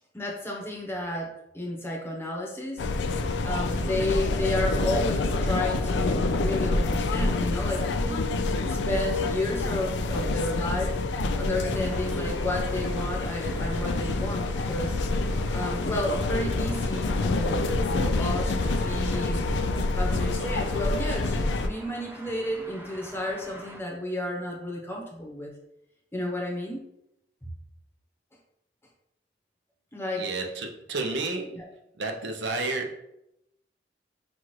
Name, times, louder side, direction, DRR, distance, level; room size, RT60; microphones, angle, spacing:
voice 1, 0.1-2.9 3.4-8.3 8.6-11.0 11.4-15.0 15.5-19.4 19.9-25.5 26.1-26.8 29.9-30.3 31.5-31.6, left 1 dB, 15° left, -1 dB, 0.8 m, -32 dB
sound 1, 2.8-21.7, left 2 dB, 80° left, 0.4 m, -27 dB
Traffic noise roadway noise, 11.7-23.8, right 1 dB, 10° right, 0.4 m, -46 dB
voice 2, 30.2-31.7 32.0-33.0, right 3 dB, 85° right, 3 dB, 0.6 m, -31 dB
5.9 x 2.4 x 3.1 m, 0.83 s
head